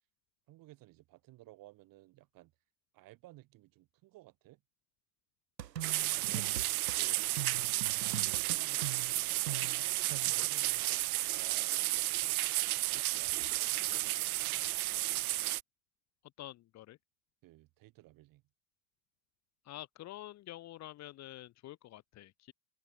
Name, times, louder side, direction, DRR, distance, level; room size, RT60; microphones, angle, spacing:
voice 1, 0.5-2.5 2.9-4.6 6.0-6.8 7.9-14.7 17.4-18.4, right 18 dB, 40° right, 7.0 m, -57 dB
sound 1, 5.6-7.0 7.4-10.5, right 11 dB, 80° right, 0.8 m, -42 dB
sound 2, 5.8-15.6, right 17 dB, 60° right, 1.1 m, -32 dB
voice 2, 6.3-7.4 16.4-17.0 19.6-22.5, left 14 dB, 35° left, 1.7 m, -49 dB
figure-of-eight pair, 85°, 49 cm